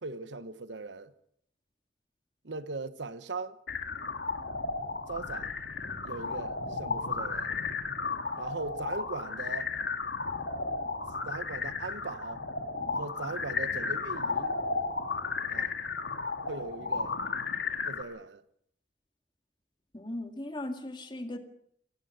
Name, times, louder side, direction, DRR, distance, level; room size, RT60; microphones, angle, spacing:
voice 1, 0.0-1.1 2.4-3.6 5.1-5.5 6.0-7.6 8.3-9.7 11.2-12.4 13.0-14.6 15.5-15.7 16.5-17.2 17.9-18.4, right 3 dB, 85° right, 1.2 m, -39 dB
sound 1, 3.7-18.0, left 4 dB, 80° left, 2.3 m, -34 dB
voice 2, 19.9-21.4, left 1 dB, 25° left, 2.1 m, -37 dB
24.5 x 18.0 x 6.6 m
head